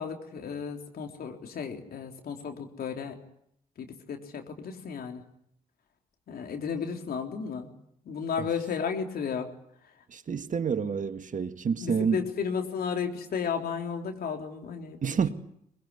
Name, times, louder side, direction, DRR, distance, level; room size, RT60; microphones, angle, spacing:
voice 1, 0.0-3.2 3.8-5.2 6.3-7.7 8.1-9.5 11.8-15.3, left 6 dB, 60° left, 3.7 m, -33 dB
voice 2, 10.1-12.2 15.0-15.3, right 6 dB, 45° right, 1.7 m, -28 dB
22.5 x 21.5 x 9.6 m
hypercardioid pair, 40°, 18 cm